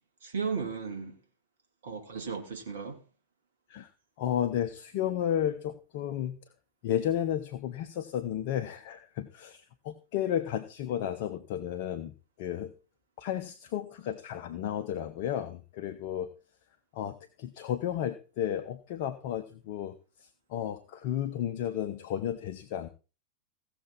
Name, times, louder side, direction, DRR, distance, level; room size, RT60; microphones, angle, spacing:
voice 1, 0.2-1.2 1.8-3.0, right 5 dB, 60° right, 2.5 m, -35 dB
voice 2, 4.2-6.4 6.8-12.1 12.4-12.7 13.2-16.3 16.9-22.9, left 10 dB, 50° left, 1.0 m, -33 dB
16.5 x 7.0 x 4.4 m
figure-of-eight pair, 90°, 0 cm